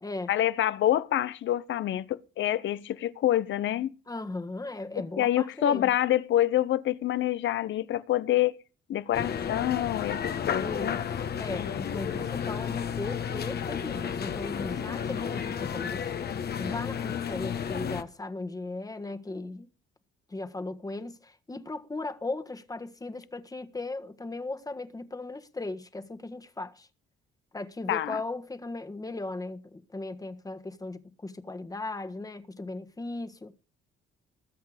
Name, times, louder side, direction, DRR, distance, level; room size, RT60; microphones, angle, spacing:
voice 1, 0.3-3.9 5.2-8.6 8.9-10.2 10.5-11.0 27.9-28.2, left 12 dB, 70° left, 0.9 m, -27 dB
voice 2, 4.1-5.9 10.6-11.0 11.4-16.1 16.6-19.7 20.3-26.9 27.5-33.5, left 2 dB, 20° left, 1.5 m, -37 dB
sound 1, 9.1-18.0, left 7 dB, 55° left, 1.4 m, -32 dB
20.5 x 8.2 x 5.1 m
cardioid pair, 90°, 20 cm